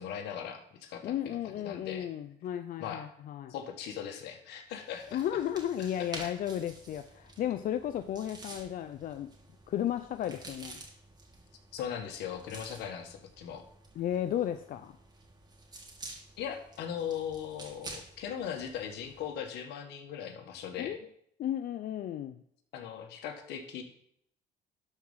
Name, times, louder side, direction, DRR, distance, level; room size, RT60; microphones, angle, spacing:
voice 1, 0.0-2.1 2.8-3.1 3.5-5.2 6.0-6.1 11.7-13.6 16.4-21.0 22.7-23.8, left 8 dB, 80° left, 1.6 m, -39 dB
voice 2, 1.0-3.5 5.1-9.3 9.7-10.8 14.0-15.0 20.8-21.0 21.4-22.4, left 11 dB, 55° left, 0.5 m, -34 dB
sound 1, 4.7-19.4, right 2 dB, 25° right, 2.2 m, -50 dB
12.0 x 4.8 x 5.7 m
cardioid pair, 110°, 17 cm